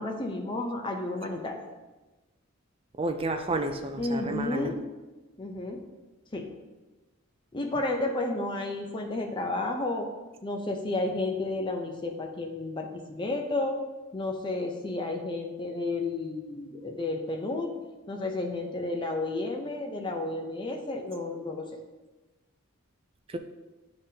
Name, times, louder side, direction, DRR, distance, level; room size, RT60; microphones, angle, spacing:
voice 1, 0.0-1.6 4.0-4.8 5.4-5.8 6.3-6.5 7.5-10.1 10.4-13.8 14.1-17.7 18.1-21.7, left 2 dB, 25° left, 2 dB, 0.6 m, -32 dB
voice 2, 3.0-4.7 23.3-23.4, right 2 dB, 25° right, 6 dB, 0.4 m, -30 dB
9.9 x 3.8 x 2.8 m, 1.2 s
head